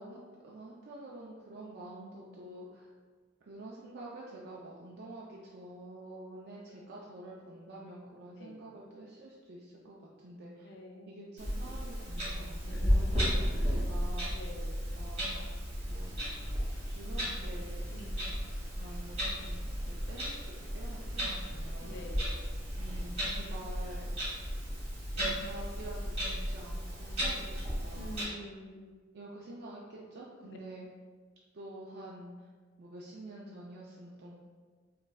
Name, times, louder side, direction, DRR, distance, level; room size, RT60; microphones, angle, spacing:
voice 1, 0.0-2.9 3.4-10.7 11.1-14.3 14.9-15.5 15.9-16.1 16.9-17.8 18.7-22.0 22.7-24.1 25.2-28.3 29.1-30.9 31.5-32.5 32.8-34.4, right 1 dB, 60° right, -4 dB, 0.4 m, -48 dB
voice 2, 10.6-11.2 12.7-13.9 14.3-14.9 17.9-18.4 21.8-22.3 27.9-28.9 30.3-30.6, left 1 dB, 65° left, 0 dB, 0.5 m, -47 dB
Clock, 11.4-28.2, equal, 35° right, 1.5 m, -34 dB
3.7 x 3.1 x 2.2 m, 1.5 s
head